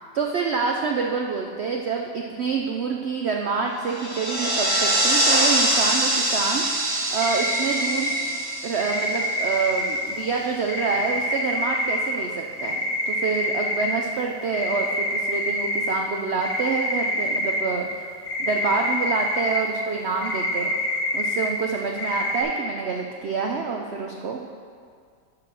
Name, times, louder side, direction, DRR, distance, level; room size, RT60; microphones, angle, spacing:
voice 1, 0.0-8.2 8.6-18.0 18.4-20.7 21.1-24.4, right 5 dB, 90° right, 1 dB, 0.5 m, -27 dB
sound 1, 3.9-9.7, right 1 dB, 15° right, 1.1 m, -24 dB
sound 2, 4.2-9.6, right 6 dB, 55° right, 0.7 m, -37 dB
sound 3, 7.2-8.2 8.8-10.1 10.7-12.1 12.6-13.9 14.5-15.9 16.4-17.6 18.3-19.6 20.2-21.5 22.0-22.4, left 1 dB, 85° left, 2.2 m, -26 dB
11.0 x 3.9 x 6.2 m, 2.1 s
omnidirectional pair, 1.8 m